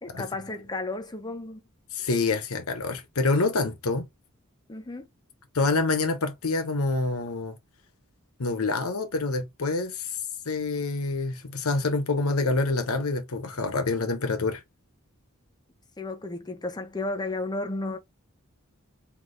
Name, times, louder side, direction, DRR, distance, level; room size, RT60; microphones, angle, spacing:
voice 1, 0.0-1.6 4.7-5.1 16.0-18.0, left 2 dB, 20° left, 0.8 m, -33 dB
voice 2, 1.9-4.1 5.5-7.6 8.4-10.2 10.5-14.6, left 3 dB, 90° left, 0.9 m, -27 dB
3.8 x 3.5 x 3.2 m
head